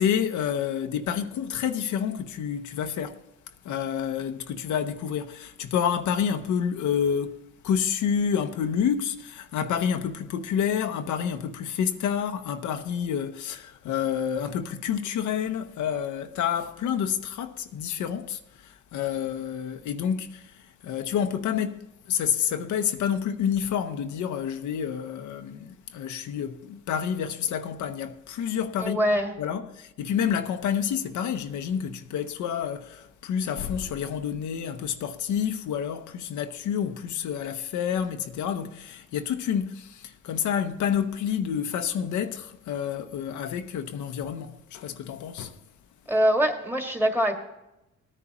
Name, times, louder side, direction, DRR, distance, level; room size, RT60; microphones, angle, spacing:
voice 1, 0.0-3.2 3.6-29.0 29.4-45.6, left 8 dB, 75° left, 0.8 m, -29 dB
voice 2, 28.8-29.3 46.1-47.4, equal, 5° right, 1.8 m, -23 dB
18.0 x 9.9 x 3.0 m
cardioid pair, 90°, 30 cm